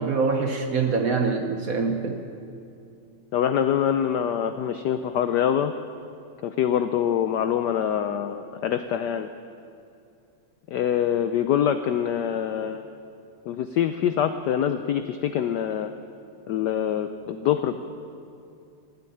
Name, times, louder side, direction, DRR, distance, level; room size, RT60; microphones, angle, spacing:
voice 1, 0.0-2.2, right 4 dB, 55° right, 4 dB, 1.0 m, -24 dB
voice 2, 3.3-5.7 6.4-9.3 10.7-12.8 13.5-15.9 16.5-17.8, left 9 dB, 80° left, 9 dB, 0.9 m, -25 dB
16.0 x 8.3 x 9.9 m, 2.5 s
omnidirectional pair, 2.4 m